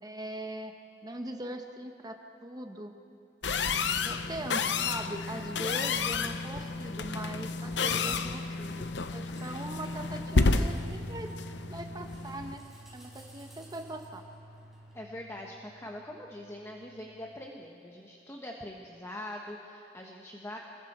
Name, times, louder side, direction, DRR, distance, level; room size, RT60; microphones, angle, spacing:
voice 1, 0.0-0.7 1.0-2.9 4.0-11.3 11.7-12.6 12.9-14.2, right 1 dB, 20° right, 4 dB, 1.0 m, -41 dB
sound 1, 3.4-12.6, left 4 dB, 75° left, 0.8 m, -31 dB
sound 2, 7.6-15.1, right 1 dB, ahead, 5.4 m, -57 dB
sound 3, 10.6-17.5, equal, 65° right, 2.7 m, -48 dB
voice 2, 14.9-20.6, left 1 dB, 15° left, 0 dB, 1.2 m, -43 dB
28.0 x 21.5 x 4.4 m, 2.6 s
head